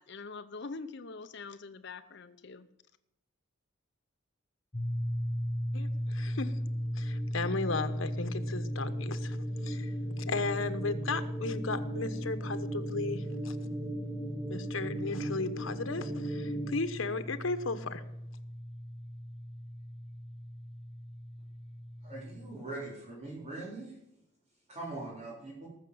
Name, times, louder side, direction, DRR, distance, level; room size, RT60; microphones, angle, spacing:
voice 1, 0.0-2.7, left 4 dB, 60° left, 12 dB, 0.7 m, -44 dB
sound 1, 4.7-22.6, equal, 30° left, 0.9 m, -37 dB
voice 2, 5.7-6.5 7.0-9.4 9.6-13.7 14.5-18.0, left 3 dB, 90° left, 10 dB, 1.1 m, -35 dB
sound 2, 6.2-16.7, right 1 dB, 10° left, 2.1 m, -40 dB
voice 3, 22.0-24.0 24.7-25.7, right 2 dB, 30° right, -7 dB, 4.2 m, -42 dB
19.0 x 6.8 x 7.8 m, 0.83 s
head